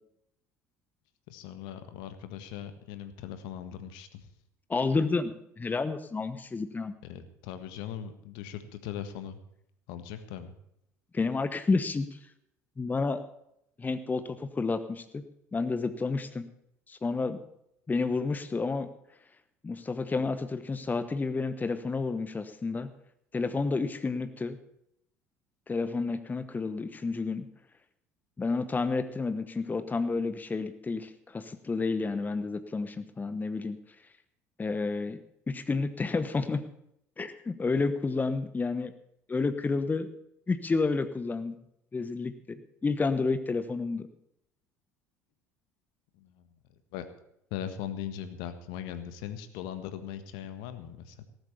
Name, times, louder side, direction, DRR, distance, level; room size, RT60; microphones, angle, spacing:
voice 1, 1.3-4.3 7.0-9.4 9.9-10.5 46.1-46.5 46.9-47.0 47.5-51.2, left 9 dB, 60° left, 10 dB, 1.6 m, -39 dB
voice 2, 4.7-6.9 11.1-12.1 12.8-13.2 13.8-15.2 15.5-16.5 16.9-17.4 17.9-18.9 19.6-22.9 23.3-24.6 25.7-27.4 28.4-33.8 34.6-35.2 35.5-36.6 37.2-38.9 39.3-40.1 40.5-41.6 41.9-44.1, left 4 dB, 20° left, 11 dB, 1.1 m, -30 dB
18.5 x 8.0 x 6.9 m, 0.77 s
figure-of-eight pair, 65°, 9 cm